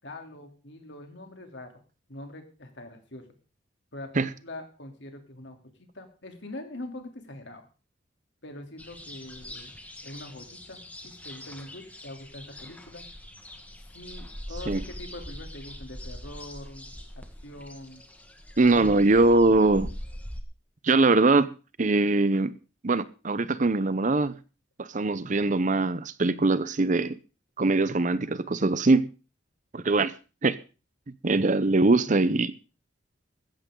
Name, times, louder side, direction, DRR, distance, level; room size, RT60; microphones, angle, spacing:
voice 1, 0.0-1.7 2.1-3.2 3.9-7.6 8.4-9.7 10.0-13.1 13.8-16.9 17.4-18.0 18.7-19.6, left 1 dB, 65° left, 3.2 m, -43 dB
sound 1, 8.8-20.4, left 1 dB, 10° left, 1.6 m, -42 dB
voice 2, 18.6-19.9 20.8-21.5 21.8-22.5 22.8-24.4 24.8-27.2 27.6-29.1 29.7-30.1 30.4-30.6 31.2-32.5, right 2 dB, 40° right, 0.7 m, -22 dB
15.5 x 14.0 x 3.8 m
head